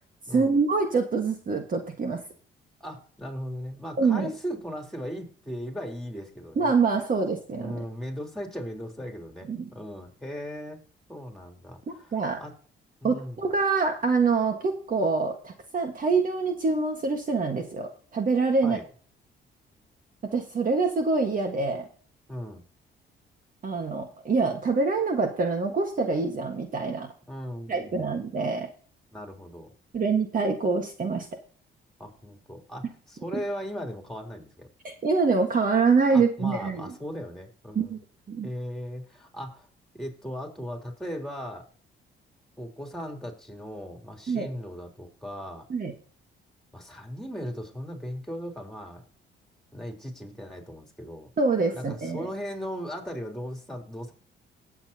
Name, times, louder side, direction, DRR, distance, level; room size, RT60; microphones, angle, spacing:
voice 1, 0.3-2.2 4.0-4.3 6.6-7.8 9.5-9.7 11.9-12.4 13.0-18.8 20.3-21.8 23.6-27.1 27.7-28.7 29.9-31.3 34.8-36.9 37.7-38.0 38.3-38.5 44.3-44.5 45.7-45.9 51.4-52.3, right 4 dB, 45° right, 4 dB, 1.6 m, -25 dB
voice 2, 2.8-6.7 7.5-10.8 11.1-12.5 13.0-13.4 18.6-18.8 22.3-22.6 27.3-28.1 29.1-29.7 32.0-34.7 36.1-38.0 38.4-39.7 39.9-41.7 42.6-45.7 46.7-49.0 49.7-51.3 51.7-54.1, equal, ahead, 2 dB, 3.6 m, -37 dB
18.0 x 7.4 x 2.9 m, 0.43 s
cardioid pair, 90°, 20 cm